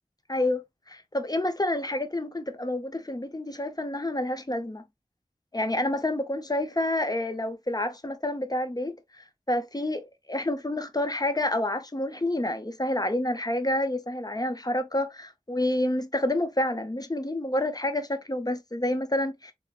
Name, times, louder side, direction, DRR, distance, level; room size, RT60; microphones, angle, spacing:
voice 1, 0.3-4.8 5.5-19.5, left 1 dB, 30° left, 0.7 m, -29 dB
5.8 x 2.1 x 2.3 m
wide cardioid pair, 60°, 14 cm